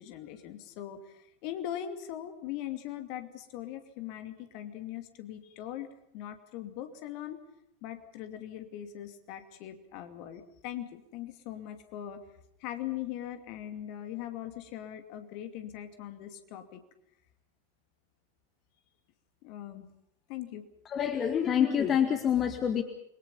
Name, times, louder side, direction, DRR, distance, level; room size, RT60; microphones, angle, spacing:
voice 1, 0.0-5.9 6.1-7.4 7.8-12.2 12.6-16.8 19.4-19.9 20.3-20.6, left 11 dB, 45° left, 7 dB, 2.6 m, -40 dB
voice 2, 20.9-22.8, left 8 dB, 25° left, 7 dB, 1.8 m, -26 dB
29.0 x 22.5 x 5.6 m, 0.76 s
figure-of-eight pair, 90°, 0 cm